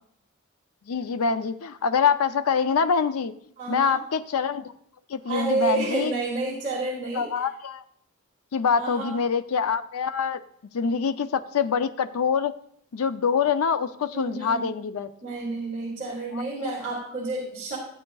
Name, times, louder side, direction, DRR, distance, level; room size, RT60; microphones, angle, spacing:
voice 1, 0.9-3.3 3.7-4.7 5.1-6.1 7.2-7.8 8.5-10.4 10.7-12.5 12.9-15.1 16.4-16.7, left 6 dB, 85° left, 11 dB, 0.5 m, -25 dB
voice 2, 3.6-4.0 5.3-7.3 8.8-9.1 14.1-14.7 15.2-17.8, right 3 dB, 35° right, -6 dB, 2.3 m, -30 dB
14.0 x 8.1 x 2.3 m, 0.66 s
head